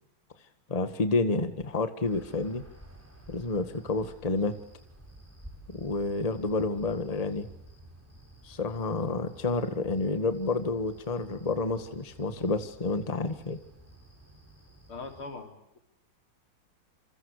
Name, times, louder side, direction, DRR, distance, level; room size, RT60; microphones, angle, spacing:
voice 1, 0.7-2.7 3.3-4.6 5.7-7.5 8.4-13.6, left 3 dB, 20° left, 9 dB, 1.7 m, -29 dB
sound 1, 2.0-15.3, right 1 dB, 5° right, 7.4 m, -52 dB
voice 2, 14.9-15.8, left 3 dB, 85° left, 4 dB, 4.8 m, -41 dB
28.5 x 26.0 x 6.6 m, 0.74 s
omnidirectional pair, 2.3 m